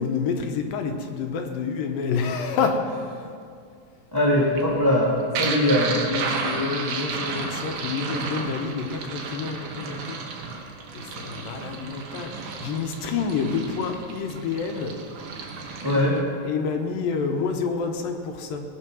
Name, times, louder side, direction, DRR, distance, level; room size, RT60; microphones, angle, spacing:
voice 1, 0.0-3.3 5.4-5.6 6.0-10.2 10.9-12.3 12.6-14.9 15.9-18.6, left 5 dB, 75° left, 5 dB, 2.6 m, -28 dB
voice 2, 4.1-6.1 15.8-16.2, left 1 dB, 15° right, -5 dB, 0.7 m, -21 dB
sound 1, 4.4-16.2, right 4 dB, 65° right, 2.4 m, -33 dB
19.0 x 7.7 x 6.2 m, 2.2 s
omnidirectional pair, 4.3 m